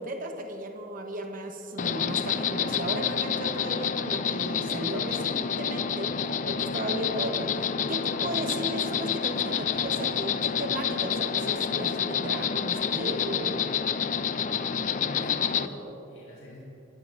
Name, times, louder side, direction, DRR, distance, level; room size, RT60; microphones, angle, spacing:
voice 1, 0.0-13.7, right 1 dB, 40° right, 3 dB, 1.0 m, -35 dB
Insect, 1.8-15.7, left 7 dB, 40° left, 0.4 m, -28 dB
voice 2, 15.0-16.6, equal, 90° left, -5 dB, 3.5 m, -42 dB
23.0 x 14.0 x 2.6 m, 3.0 s
head